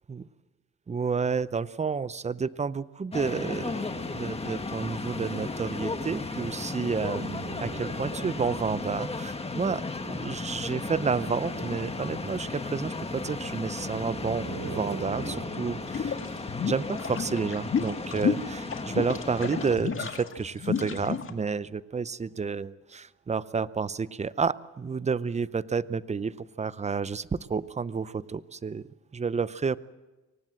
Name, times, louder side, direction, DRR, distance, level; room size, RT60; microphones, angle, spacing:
voice 1, 0.9-3.9 4.1-16.2 16.6-28.9 29.1-29.8, right 5 dB, 20° right, 17 dB, 0.7 m, -30 dB
sound 1, 3.1-19.8, left 3 dB, 20° left, 1.7 m, -35 dB
sound 2, 7.0-9.0 10.7-12.4 13.7-16.0 17.3-17.4, right 7 dB, 75° right, 2.7 m, -43 dB
sound 3, 15.9-21.3, left 7 dB, 45° left, 2.0 m, -30 dB
24.0 x 18.5 x 7.7 m, 1.2 s
cardioid pair, 90°, 30 cm